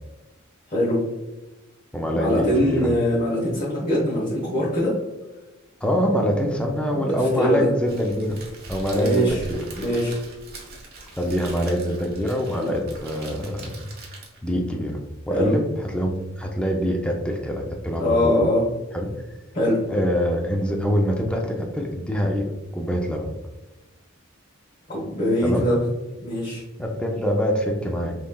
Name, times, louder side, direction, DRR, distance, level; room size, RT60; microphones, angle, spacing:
voice 1, 0.7-1.0 2.1-4.9 6.9-7.7 8.9-9.4 9.8-10.2 12.6-12.8 15.3-15.6 18.0-18.6 19.5-19.8 24.9-25.8 26.2-26.6, equal, 40° left, -7 dB, 1.1 m, -22 dB
voice 2, 1.9-2.9 5.8-8.4 8.7-9.6 11.2-13.9 14.4-15.0 15.3-18.4 18.9-19.1 19.9-23.3 25.4-25.7 26.8-28.2, equal, 5° left, 1 dB, 0.5 m, -24 dB
Crackle, 7.8-14.6, right 2 dB, 50° right, 1.1 m, -41 dB
5.5 x 3.2 x 2.3 m, 1.0 s
head